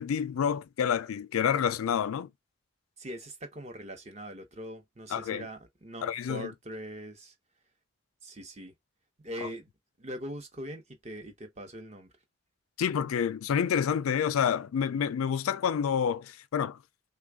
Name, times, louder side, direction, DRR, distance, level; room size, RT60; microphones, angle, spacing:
voice 1, 0.0-2.3 5.1-5.5 6.0-6.5 12.8-16.8, left 7 dB, 85° left, 0.4 m, -28 dB
voice 2, 3.0-7.3 8.2-8.7 9.2-9.7 10.0-12.1, equal, 30° right, 0.8 m, -42 dB
3.3 x 2.3 x 3.4 m
head